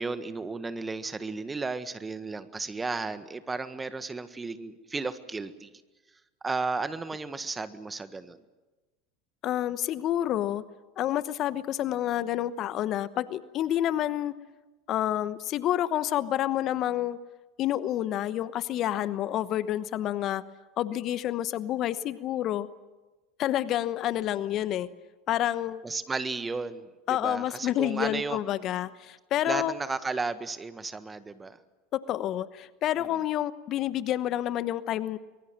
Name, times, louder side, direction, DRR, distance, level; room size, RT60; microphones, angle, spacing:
voice 1, 0.0-5.7 6.4-8.4 25.8-28.4 29.4-31.6 33.0-33.1, right 3 dB, 15° right, 12 dB, 1.5 m, -34 dB
voice 2, 9.4-10.6 11.0-14.3 14.9-17.2 17.6-20.4 20.8-22.7 23.4-24.9 25.3-25.8 27.1-29.7 31.9-35.2, left 12 dB, 45° left, 14 dB, 1.0 m, -29 dB
24.0 x 22.5 x 7.5 m, 1.2 s
hypercardioid pair, 85°, 0 cm